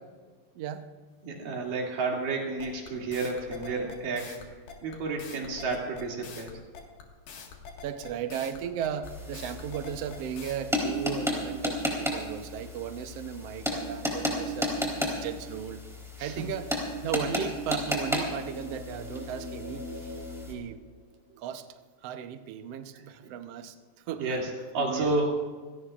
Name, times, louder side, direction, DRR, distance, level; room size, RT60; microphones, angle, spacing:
voice 1, 0.5-0.9 7.8-15.8 16.2-20.2 20.5-20.8 21.4-24.3 24.8-25.1, right 9 dB, 85° right, 7 dB, 1.3 m, -36 dB
voice 2, 1.2-4.4 4.8-6.6 16.2-16.5 23.2-23.3 24.2-25.4, right 3 dB, 70° right, -1 dB, 4.2 m, -31 dB
sound 1, 2.6-10.6, left 6 dB, 85° left, 3.6 m, -45 dB
sound 2, 9.0-20.5, left 1 dB, ahead, 3.3 m, -33 dB
sound 3, 17.7-21.5, left 1 dB, 25° left, 5.4 m, -44 dB
27.0 x 17.5 x 2.5 m, 1.4 s
omnidirectional pair, 4.1 m